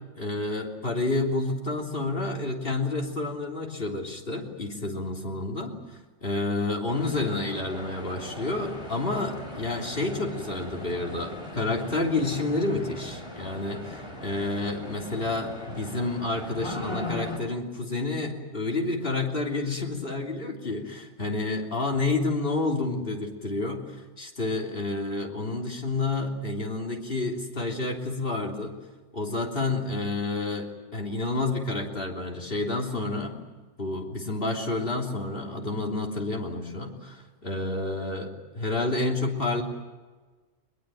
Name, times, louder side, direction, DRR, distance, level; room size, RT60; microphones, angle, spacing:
voice 1, 0.2-5.8 6.2-28.7 29.1-33.4 33.8-39.6, left 2 dB, 50° left, 0 dB, 3.5 m, -29 dB
sound 1, 6.9-17.4, left 1 dB, 25° left, 3.9 m, -39 dB
22.5 x 22.0 x 9.2 m, 1.3 s
omnidirectional pair, 1.2 m